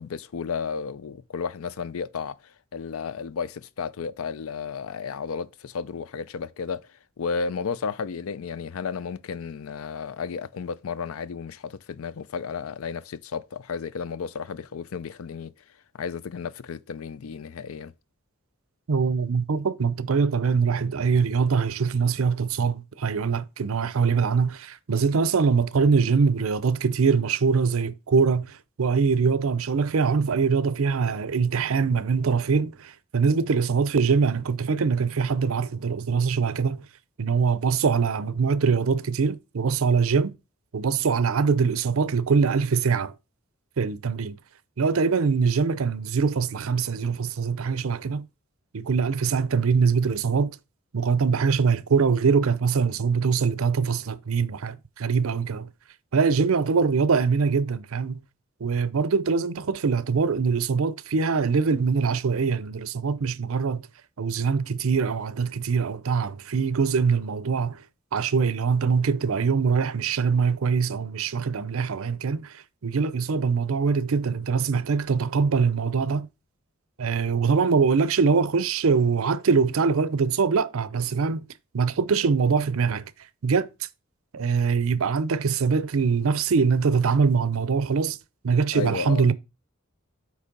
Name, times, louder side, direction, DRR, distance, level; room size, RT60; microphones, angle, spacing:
voice 1, 0.0-2.4 2.7-6.8 7.2-15.5 16.0-17.9 88.7-89.3, left 5 dB, 85° left, 0.4 m, -33 dB
voice 2, 18.9-36.8 37.2-40.3 40.7-43.1 43.8-44.4 44.8-48.3 48.7-50.5 50.9-55.7 56.1-58.2 58.6-63.9 64.2-67.8 68.1-72.5 72.8-76.3 77.0-81.4 81.7-83.0 83.4-83.7 84.3-88.2 88.4-89.3, right 5 dB, 80° right, 0.5 m, -23 dB
8.2 x 3.2 x 5.1 m
head